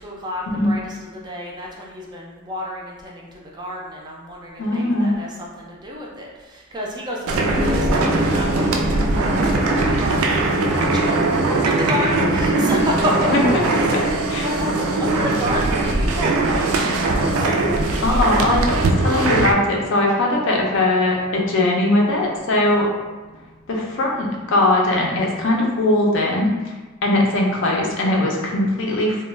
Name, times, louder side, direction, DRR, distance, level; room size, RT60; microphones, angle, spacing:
voice 1, 0.0-13.5 13.9-14.0 14.4-17.6, equal, 20° right, -2 dB, 0.4 m, -30 dB
voice 2, 4.6-5.1 13.3-13.4 13.9-14.0 14.3-14.5 18.0-22.9 23.7-26.5 27.0-29.2, left 1 dB, 65° left, -1 dB, 0.5 m, -20 dB
sound 1, 7.3-19.5, right 2 dB, 90° right, 0.3 m, -20 dB
sound 2, 7.6-25.8, equal, 20° left, 0.7 m, -33 dB
2.2 x 2.1 x 3.2 m, 1.2 s
head